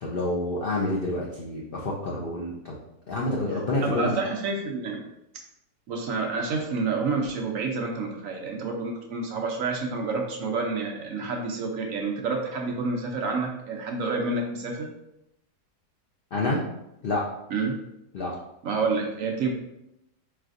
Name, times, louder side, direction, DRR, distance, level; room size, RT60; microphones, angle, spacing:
voice 1, 0.0-2.8 3.1-4.1 16.3-16.6 17.0-17.2 18.1-18.3, left 2 dB, 70° left, -3 dB, 0.5 m, -28 dB
voice 2, 3.8-5.0 5.9-14.9 17.5-17.7 18.6-19.5, right 4 dB, 65° right, 1 dB, 0.9 m, -28 dB
4.8 x 3.2 x 2.5 m, 0.86 s
omnidirectional pair, 1.7 m